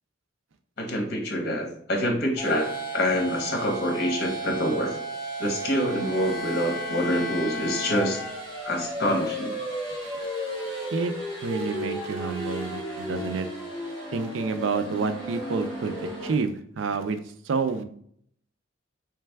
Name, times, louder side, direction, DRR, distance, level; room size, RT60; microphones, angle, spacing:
voice 1, 0.8-5.0 5.4-8.2 8.6-9.6, equal, 55° left, 2 dB, 1.0 m, -26 dB
sound 1, 2.4-16.3, right 1 dB, 25° left, 1.6 m, -34 dB
sound 2, 5.6-8.8, left 6 dB, 85° left, 0.6 m, -37 dB
voice 2, 11.4-13.5 14.1-17.2 17.4-17.8, right 4 dB, 85° right, 9 dB, 0.4 m, -29 dB
3.3 x 3.3 x 3.3 m, 0.63 s
head